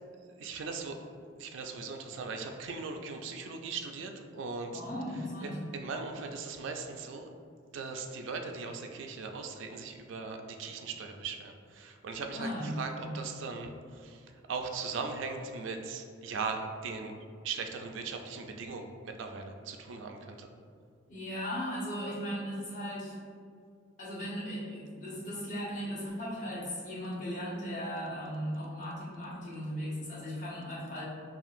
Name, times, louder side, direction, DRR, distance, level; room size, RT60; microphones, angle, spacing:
voice 1, 0.4-1.0 1.4-4.8 5.4-7.3 7.7-17.1 17.4-20.5, right 4 dB, 75° right, 4 dB, 0.4 m, -39 dB
voice 2, 4.7-5.6 12.3-13.1 21.1-23.2 24.0-31.0, equal, 40° left, -8 dB, 1.2 m, -37 dB
5.6 x 2.4 x 2.5 m, 2.3 s
head